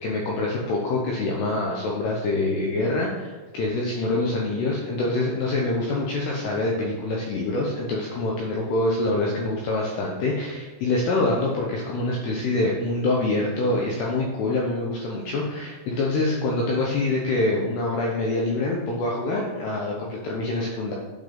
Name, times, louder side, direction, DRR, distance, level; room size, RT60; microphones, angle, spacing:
voice 1, 0.0-20.9, left 2 dB, 80° left, -2 dB, 2.4 m, -25 dB
9.1 x 5.4 x 3.8 m, 1.4 s
omnidirectional pair, 5.8 m